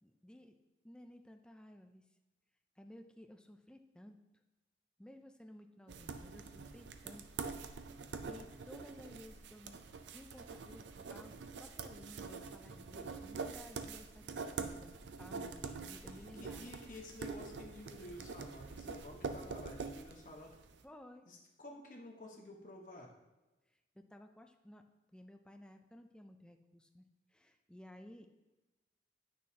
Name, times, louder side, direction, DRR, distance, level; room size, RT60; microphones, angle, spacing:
voice 1, 0.0-0.6 0.8-2.1 2.8-4.2 5.0-7.2 8.2-9.8 10.1-16.8 20.8-21.3 23.7-24.8 25.1-28.3, left 1 dB, 5° left, 5 dB, 0.4 m, -56 dB
sound 1, 5.9-20.7, right 4 dB, 90° right, 0.5 m, -45 dB
voice 2, 16.1-20.6 21.3-23.1, left 1 dB, 50° left, 0 dB, 1.1 m, -51 dB
9.3 x 6.3 x 2.8 m, 1.1 s
head